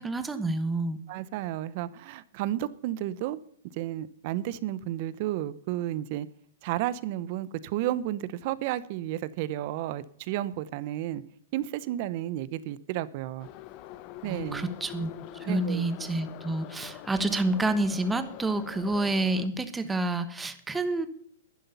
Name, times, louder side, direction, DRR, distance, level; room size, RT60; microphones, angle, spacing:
voice 1, 0.0-1.0 14.2-15.1 15.4-21.1, right 2 dB, 10° right, 11 dB, 1.2 m, -28 dB
voice 2, 1.1-3.4 3.7-6.3 6.6-11.2 11.5-13.5 14.2-14.7 15.4-15.9, right 13 dB, 45° right, 18 dB, 0.8 m, -32 dB
Subway metro underground, 13.4-19.5, left 14 dB, 40° left, 0.8 m, -44 dB
11.5 x 10.0 x 5.5 m, 0.63 s
hypercardioid pair, 140°, 0 cm